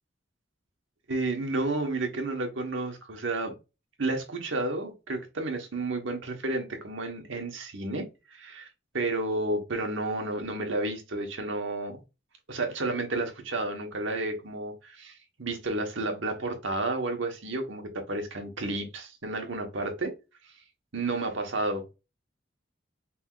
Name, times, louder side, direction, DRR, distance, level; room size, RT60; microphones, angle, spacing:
voice 1, 1.1-3.6 4.0-8.7 8.9-12.0 12.5-20.1 20.9-21.9, right 2 dB, 85° right, 1.3 m, -31 dB
5.5 x 3.5 x 2.4 m
head